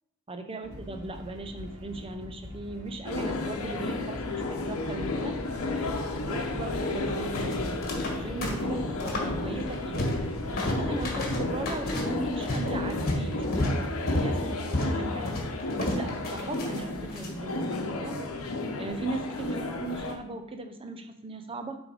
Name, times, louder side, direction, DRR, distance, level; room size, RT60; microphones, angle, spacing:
voice 1, 0.3-5.4 6.2-10.0 10.5-15.3 15.8-18.2 18.8-21.8, right 2 dB, 25° right, 7 dB, 0.6 m, -38 dB
sound 1, 0.6-13.7, equal, 75° right, 1.7 m, -41 dB
sound 2, 3.0-20.2, left 2 dB, 70° left, 0.9 m, -33 dB
sound 3, 7.3-8.2 8.4-9.3 9.6-10.3 10.6-17.3, left 1 dB, 45° left, 1.6 m, -31 dB
7.4 x 3.5 x 4.9 m, 0.80 s
head